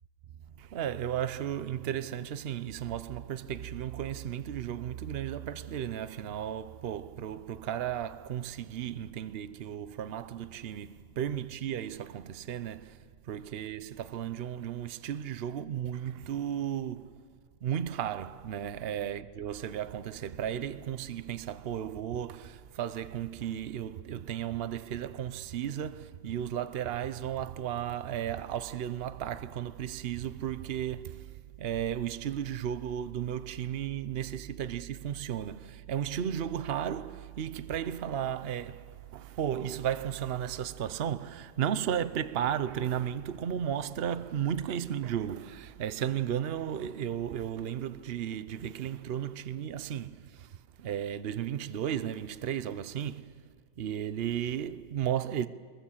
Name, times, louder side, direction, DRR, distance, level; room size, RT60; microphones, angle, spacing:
voice 1, 0.6-13.0 13.3-17.2 17.6-50.5 50.8-53.4 53.8-55.5, right 9 dB, 85° right, 0.5 m, -34 dB
23.0 x 21.5 x 7.3 m
omnidirectional pair, 1.9 m